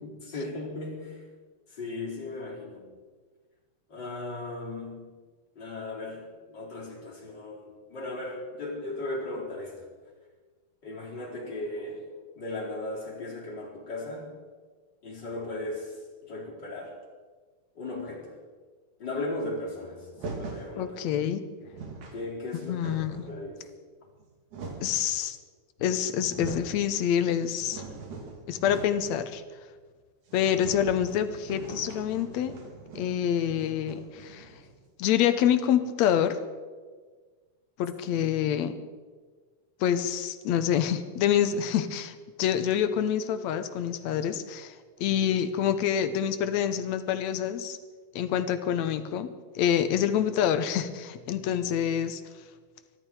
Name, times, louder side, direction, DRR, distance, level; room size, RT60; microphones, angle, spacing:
voice 1, 0.0-1.2 1.7-2.8 3.9-5.1 5.6-9.8 10.8-12.0 12.4-14.3 15.0-16.9 17.8-18.3 19.0-21.0 22.1-23.0 23.3-23.6, left 2 dB, 35° left, -4 dB, 4.9 m, -37 dB
sound 1, 20.2-20.7 21.3-21.4 21.6-22.2 22.5-23.4 24.1-25.0 25.8-25.9 26.2-26.8 27.2-29.1 29.4-29.5 29.8-29.9 30.3-34.8, right 3 dB, 90° right, 4.0 m, -42 dB
voice 2, 20.8-21.4 22.7-23.2 24.8-25.4 25.8-27.8 28.5-29.4 30.3-32.5 33.0-34.5 35.0-36.4 37.8-38.7 39.8-44.7 45.0-47.8 48.2-49.3 49.6-52.2, left 9 dB, 75° left, 10 dB, 2.1 m, -26 dB
23.0 x 12.5 x 4.9 m, 1.4 s
omnidirectional pair, 3.4 m